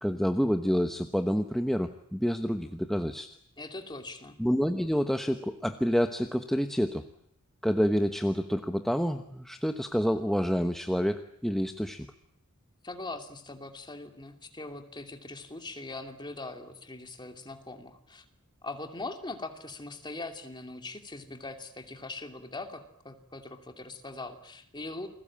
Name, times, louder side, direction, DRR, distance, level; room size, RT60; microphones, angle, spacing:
voice 1, 0.0-3.4 4.4-7.0 7.6-12.1, equal, ahead, 6 dB, 1.1 m, -28 dB
voice 2, 3.6-4.4 12.8-18.2 18.6-25.1, left 2 dB, 20° left, 5 dB, 2.7 m, -41 dB
29.0 x 21.0 x 8.7 m, 0.70 s
head